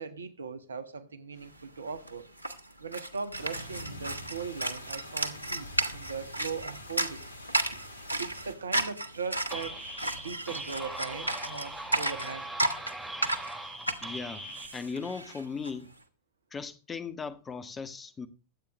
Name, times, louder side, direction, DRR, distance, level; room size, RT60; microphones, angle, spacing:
voice 1, 0.0-2.3 2.8-7.3 8.2-9.8 10.1-12.5, right 5 dB, 70° right, 1.3 m, -39 dB
sound 1, 1.6-1.7 1.9-15.7, right 1 dB, 90° left, 1.3 m, -33 dB
sound 2, 3.3-8.5, left 1 dB, 90° right, 2.1 m, -45 dB
sound 3, 9.5-14.7, right 1 dB, 5° right, 4.8 m, -40 dB
voice 2, 14.0-15.9 16.5-18.3, left 5 dB, 20° left, 1.5 m, -38 dB
22.5 x 8.6 x 3.1 m
figure-of-eight pair, 90°, 0 cm